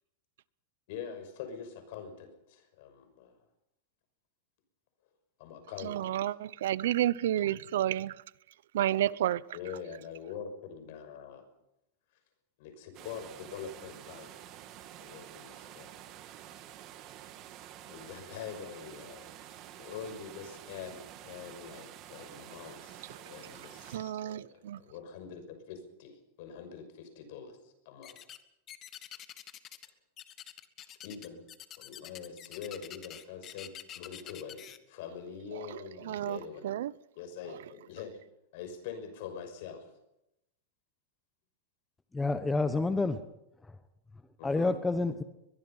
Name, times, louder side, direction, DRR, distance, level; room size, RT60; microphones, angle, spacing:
voice 1, 0.9-3.4 5.4-6.2 9.5-11.4 12.6-14.3 15.0-15.9 17.9-19.3 19.8-28.2 31.0-31.5 31.8-36.7 37.2-38.1 38.5-39.9 44.4-44.7, left 7 dB, 65° left, 6.0 m, -44 dB
voice 2, 5.8-8.1 8.7-9.4 23.9-24.8 35.5-35.8 36.0-36.9, right 12 dB, 80° right, 0.7 m, -31 dB
sound 1, 12.9-24.0, right 11 dB, 40° right, 2.5 m, -49 dB
sound 2, 28.0-28.4 28.7-29.9 30.2-34.8, left 11 dB, 30° left, 1.4 m, -47 dB
voice 3, 42.1-43.2 44.4-45.2, left 3 dB, 10° left, 1.2 m, -28 dB
22.5 x 22.0 x 5.7 m
supercardioid pair, 145°, 0 cm